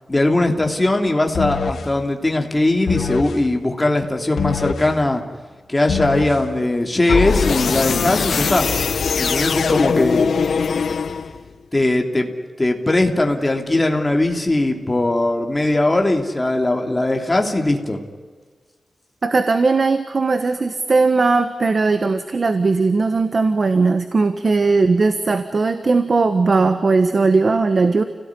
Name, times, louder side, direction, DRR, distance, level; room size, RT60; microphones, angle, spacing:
voice 1, 0.1-5.2 5.7-8.7 9.2-10.3 11.7-12.3 12.6-18.0, left 2 dB, 15° left, 3 dB, 3.1 m, -19 dB
sound 1, 1.3-1.9 2.9-3.4 4.4-4.9 5.9-6.4 7.1-11.5, left 5 dB, 85° left, 1.3 m, -21 dB
voice 2, 19.2-28.0, right 3 dB, 45° right, 9 dB, 1.4 m, -18 dB
29.5 x 17.5 x 9.9 m, 1.4 s
wide cardioid pair, 145°, 0 cm